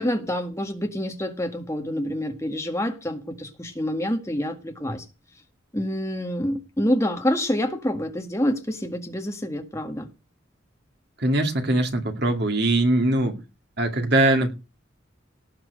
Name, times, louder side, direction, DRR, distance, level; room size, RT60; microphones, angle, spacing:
voice 1, 0.0-5.0 5.7-10.1, equal, 15° left, 1.8 m, -27 dB
voice 2, 11.2-13.4 13.8-14.5, right 2 dB, 55° right, 2.5 m, -21 dB
18.0 x 6.1 x 8.0 m
head